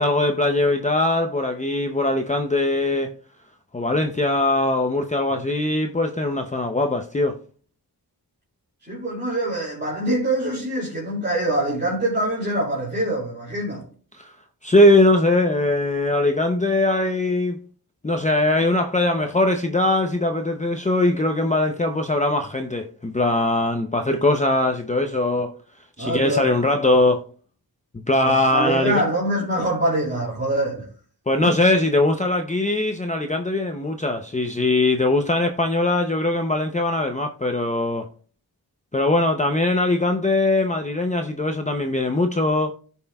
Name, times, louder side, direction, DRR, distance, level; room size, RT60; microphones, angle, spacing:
voice 1, 0.0-3.1 3.7-7.4 14.1-14.3 14.6-17.6 18.0-25.6 26.0-27.2 27.9-29.0 31.3-38.1 38.9-42.7, left 2 dB, 20° left, 0.6 m, -21 dB
voice 2, 8.9-13.8 26.0-26.5 28.2-30.9 31.4-31.5, right 1 dB, 30° right, 2.6 m, -24 dB
16.0 x 5.5 x 2.3 m
wide cardioid pair, 105°, 38 cm